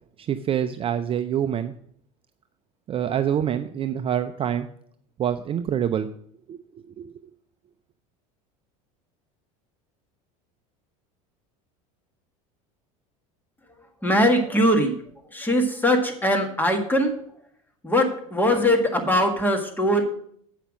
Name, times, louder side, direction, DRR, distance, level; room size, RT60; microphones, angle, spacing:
voice 1, 0.2-1.7 2.9-4.7 5.2-6.1 6.5-7.1, right 9 dB, 30° right, 10 dB, 0.5 m, -26 dB
voice 2, 14.0-14.9 15.3-17.2 17.8-20.0, equal, 10° left, 3 dB, 1.7 m, -21 dB
8.1 x 5.8 x 6.2 m, 0.64 s
supercardioid pair, 105°, 18 cm